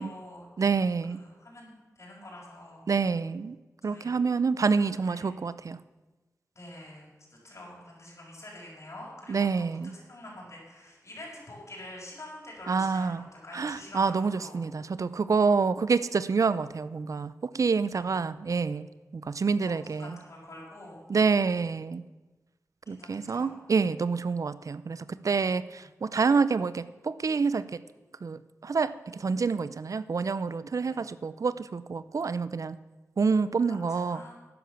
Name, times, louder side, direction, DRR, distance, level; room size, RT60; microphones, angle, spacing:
voice 1, 0.0-0.5 1.1-2.8 3.9-4.2 5.0-5.4 6.6-14.6 17.9-18.2 19.6-21.0 22.9-23.5 25.8-25.9 30.9-31.0 33.7-34.3, left 1 dB, 55° left, -4 dB, 5.7 m, -46 dB
voice 2, 0.6-1.2 2.9-3.6 3.8-5.8 9.3-9.9 12.7-13.2 13.5-18.9 19.1-20.2 21.1-22.0 22.9-27.8 28.2-32.8 33.2-34.2, right 5 dB, 65° right, 16 dB, 0.5 m, -27 dB
12.0 x 10.0 x 6.9 m, 1.2 s
wide cardioid pair, 60°, 6 cm